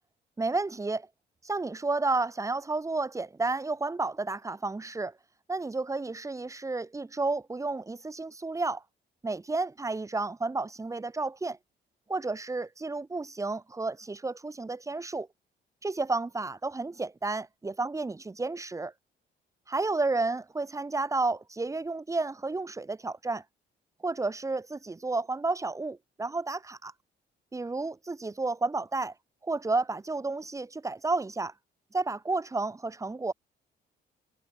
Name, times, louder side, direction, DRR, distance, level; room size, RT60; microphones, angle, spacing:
voice 1, 0.4-1.1 1.4-5.1 5.5-8.8 9.2-11.6 12.1-15.3 15.8-18.9 19.7-23.4 24.0-26.9 27.5-29.1 29.4-31.5 31.9-33.3, right 3 dB, 15° right, 2.9 m, -31 dB
cardioid pair, 130°, 18 cm